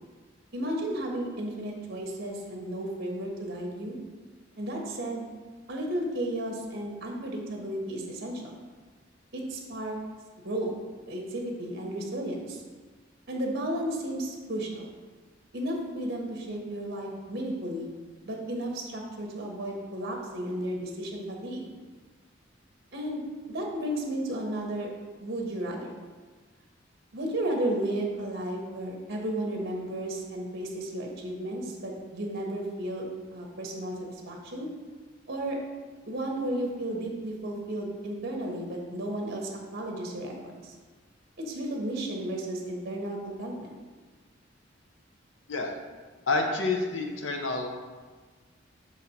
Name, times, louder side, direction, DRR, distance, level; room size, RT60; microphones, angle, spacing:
voice 1, 0.5-4.0 4.6-5.3 5.7-8.5 9.3-10.0 10.4-10.7 11.1-12.6 13.3-14.9 15.5-17.9 18.2-21.6 22.9-23.2 23.5-24.9 25.2-25.9 27.1-33.0 33.3-34.7 35.3-35.6 36.1-40.7 41.4-43.8, right 1 dB, 55° right, 1 dB, 1.0 m, -33 dB
voice 2, 46.3-47.7, left 3 dB, 85° left, 3 dB, 0.8 m, -28 dB
6.3 x 4.1 x 4.2 m, 1.4 s
head